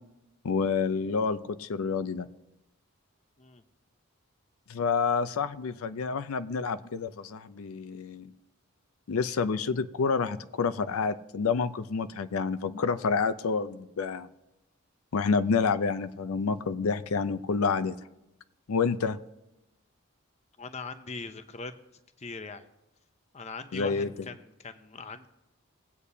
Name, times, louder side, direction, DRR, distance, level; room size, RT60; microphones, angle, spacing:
voice 1, 0.4-2.3 4.7-8.3 9.1-14.3 15.1-18.0 18.7-19.2 23.7-24.1, left 5 dB, 85° left, 12 dB, 0.5 m, -28 dB
voice 2, 20.6-21.7 22.2-22.7 23.3-25.3, left 4 dB, 30° left, 10 dB, 0.6 m, -40 dB
19.5 x 8.2 x 2.7 m, 0.91 s
head